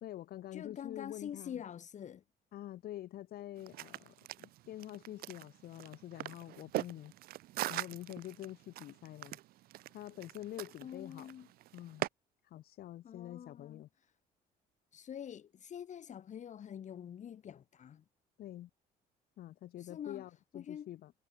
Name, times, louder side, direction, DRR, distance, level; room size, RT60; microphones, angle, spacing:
voice 1, 0.0-1.6 2.5-7.1 7.7-9.4 9.9-11.3 11.7-12.1 12.4-13.9 18.4-18.7 19.4-21.1, left 13 dB, 65° left, 1.3 m, -46 dB
voice 2, 0.5-2.2 10.8-11.5 13.0-13.8 14.9-18.0 19.8-20.2 20.5-20.9, left 9 dB, 45° left, 1.5 m, -46 dB
sound 1, 3.6-12.1, right 16 dB, 65° right, 0.4 m, -42 dB
cardioid pair, 110°, 17 cm